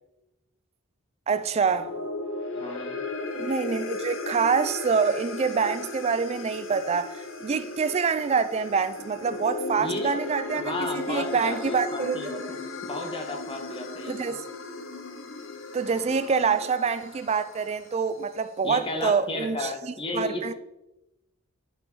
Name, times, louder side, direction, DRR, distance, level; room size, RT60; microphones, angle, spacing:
voice 1, 1.3-1.9 3.4-10.7 11.1-12.2 14.1-14.4 15.7-20.5, right 5 dB, 30° right, 0.3 m, -26 dB
sound 1, 1.5-18.0, left 3 dB, 65° left, 0.9 m, -36 dB
voice 2, 2.5-3.0 9.8-10.2 10.5-14.3 18.6-20.5, left 2 dB, 25° left, 1.2 m, -34 dB
8.7 x 5.2 x 3.9 m
head